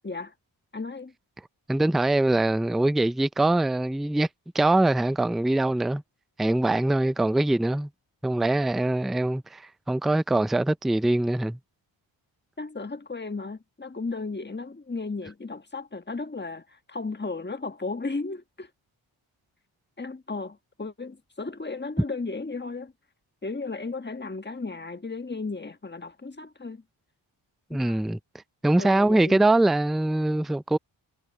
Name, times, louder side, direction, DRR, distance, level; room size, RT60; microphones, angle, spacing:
voice 1, 0.0-0.3 0.7-1.1 12.6-18.7 20.0-22.9 23.4-26.8 27.7-28.0 28.8-29.4, left 3 dB, 20° left, 1.4 m, -35 dB
voice 2, 1.7-4.3 4.5-6.0 6.4-7.9 8.2-9.6 9.9-11.6 27.7-28.2 28.6-30.8, right 2 dB, ahead, 0.5 m, -23 dB
cardioid pair, 50°, 49 cm